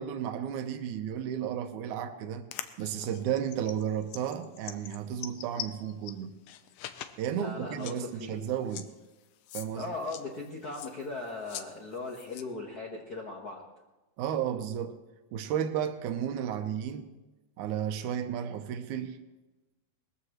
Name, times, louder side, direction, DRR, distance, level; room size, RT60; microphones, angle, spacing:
voice 1, 0.0-2.5 2.8-6.3 7.2-8.9 9.5-9.9 14.2-15.0 15.3-17.1 17.6-19.2, right 9 dB, 75° right, 8 dB, 2.2 m, -33 dB
sound 1, 2.5-6.1 6.5-7.2 7.5-7.6 7.8-8.0 8.7-8.9 9.5-9.7 9.9-11.7 11.9-12.4, left 12 dB, 90° left, 2.3 m, -42 dB
voice 2, 7.3-8.4 9.7-13.6, left 3 dB, 60° left, -2 dB, 1.0 m, -38 dB
20.0 x 14.5 x 3.1 m, 1.1 s
omnidirectional pair, 3.7 m